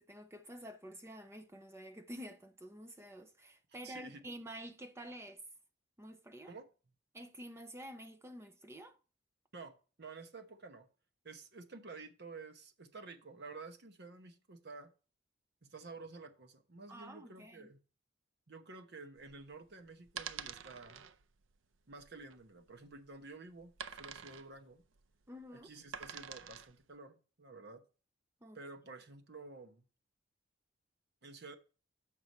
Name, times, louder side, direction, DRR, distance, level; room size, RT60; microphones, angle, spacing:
voice 1, 0.0-5.4 6.0-6.5 7.1-9.0 16.9-17.7 25.3-25.7 28.4-28.6, equal, 15° right, 0.5 m, -49 dB
voice 2, 3.7-4.2 6.5-6.7 9.5-10.9 11.2-14.9 15.7-17.8 18.5-21.0 21.9-24.8 25.5-27.8 28.5-29.8 31.2-31.6, right 3 dB, 60° right, 1.0 m, -51 dB
sound 1, 19.2-26.8, right 7 dB, 80° right, 0.6 m, -48 dB
8.0 x 5.9 x 4.1 m
head